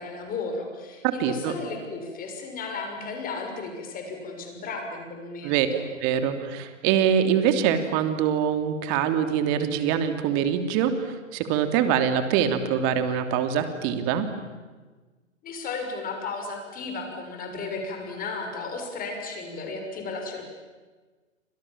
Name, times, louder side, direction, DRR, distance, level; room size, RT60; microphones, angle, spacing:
voice 1, 0.0-5.8 15.4-20.4, left 3 dB, 20° left, 4 dB, 6.6 m, -34 dB
voice 2, 1.2-1.5 5.4-5.7 6.0-14.3, right 8 dB, 35° right, 8 dB, 3.0 m, -24 dB
29.5 x 26.5 x 7.5 m, 1.3 s
figure-of-eight pair, 120°, 38 cm